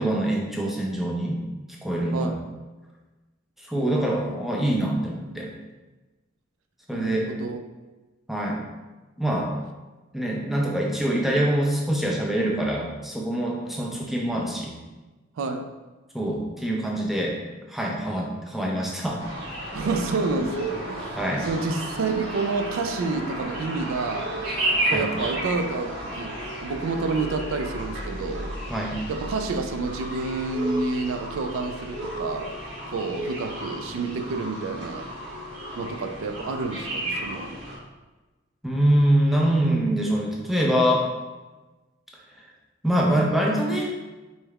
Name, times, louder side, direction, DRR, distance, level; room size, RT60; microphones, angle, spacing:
voice 1, 0.0-1.4 1.8-2.3 3.6-5.5 6.9-7.3 8.3-8.6 9.2-9.5 10.1-14.7 16.1-17.4 17.7-19.2 21.2-21.5 24.9-25.1 28.7-29.0 38.6-41.1 42.8-43.9, right 1 dB, ahead, -2 dB, 0.4 m, -24 dB
voice 2, 2.1-2.4 3.7-5.5 6.9-7.6 15.4-15.7 19.7-24.4 24.9-28.5 29.1-32.5 32.9-35.1 35.8-37.5, right 3 dB, 80° right, 6 dB, 0.4 m, -29 dB
sound 1, 19.2-37.8, right 1 dB, 65° right, 1.3 m, -33 dB
4.1 x 3.3 x 2.3 m, 1.2 s
head